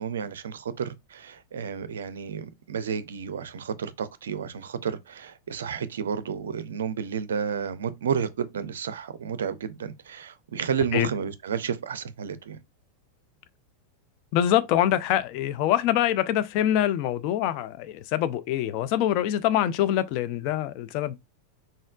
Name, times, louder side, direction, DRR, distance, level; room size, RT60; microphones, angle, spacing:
voice 1, 0.0-12.6, right 7 dB, 65° right, 0.4 m, -31 dB
voice 2, 14.3-21.1, left 11 dB, 45° left, 0.4 m, -24 dB
4.1 x 3.7 x 2.3 m
figure-of-eight pair, 90°, 0 cm